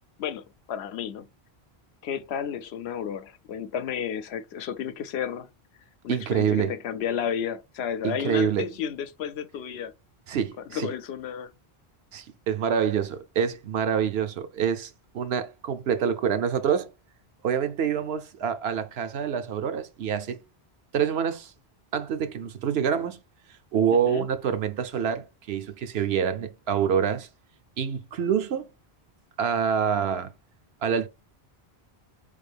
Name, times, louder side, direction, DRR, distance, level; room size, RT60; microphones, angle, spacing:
voice 1, 0.2-1.3 2.0-5.5 6.0-9.9 10.7-11.5 24.1-24.3, left 8 dB, 75° left, 0.8 m, -32 dB
voice 2, 6.1-6.7 8.0-8.7 10.3-10.9 12.1-16.9 17.4-20.4 20.9-21.5 21.9-23.2 23.7-27.3 27.8-28.7 29.4-30.3 30.8-31.1, right 7 dB, 75° right, 0.9 m, -26 dB
4.4 x 3.5 x 3.4 m
omnidirectional pair, 1.1 m